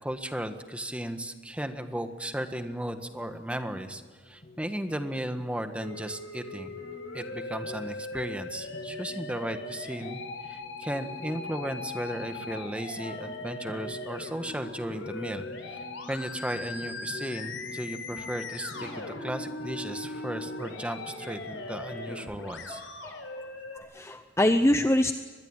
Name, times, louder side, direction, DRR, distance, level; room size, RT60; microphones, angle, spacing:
voice 1, 0.0-6.7 7.1-10.2 10.5-15.8 16.1-22.8, right 1 dB, 5° right, 7 dB, 1.6 m, -35 dB
sound 1, 3.8-22.2, left 2 dB, 40° left, 2.9 m, -48 dB
Musical instrument, 5.8-23.8, left 2 dB, 80° left, 4.8 m, -40 dB
sound 2, 6.8-22.3, left 1 dB, 60° left, 5.8 m, -51 dB
voice 2, 22.7-23.5 23.7-25.1, left 1 dB, 15° left, 8 dB, 0.8 m, -25 dB
24.0 x 21.0 x 9.0 m, 1.4 s
head